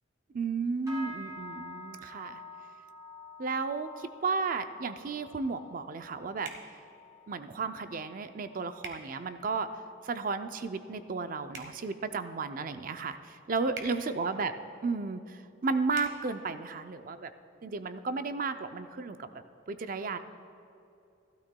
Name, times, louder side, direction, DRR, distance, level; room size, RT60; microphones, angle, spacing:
voice 1, 0.3-2.4 3.4-6.8 7.3-9.7 10.0-14.5 14.8-17.3 17.6-19.3 19.7-20.2, right 4 dB, 45° right, 10 dB, 0.4 m, -33 dB
sound 1, 0.9-10.4 10.7-11.2 11.6-11.9 12.4-12.5, left 1 dB, 15° right, 2.3 m, -49 dB
sound 2, 6.4-6.6 8.8-9.0 11.5-11.7 13.7-13.9 15.9-16.1, right 4 dB, 65° right, 1.2 m, -42 dB
15.5 x 12.5 x 2.2 m, 2.8 s
head